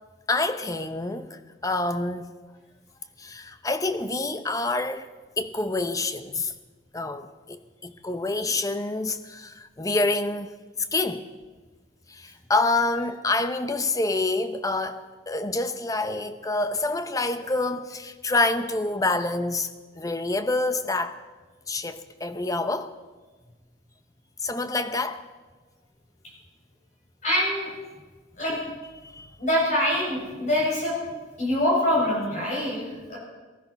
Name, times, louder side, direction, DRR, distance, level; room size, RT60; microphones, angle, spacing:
voice 1, 0.3-2.3 3.2-5.1 5.4-6.5 6.9-10.5 10.9-11.3 12.1-19.7 20.0-21.2 21.7-22.9 24.4-25.2 28.5-28.6 29.0-29.3, left 2 dB, 15° left, 0.7 m, -27 dB
voice 2, 27.2-27.7 28.4-28.6 29.4-31.0 31.4-33.2, left 1 dB, 40° left, 7.3 m, -24 dB
19.0 x 13.0 x 5.8 m
head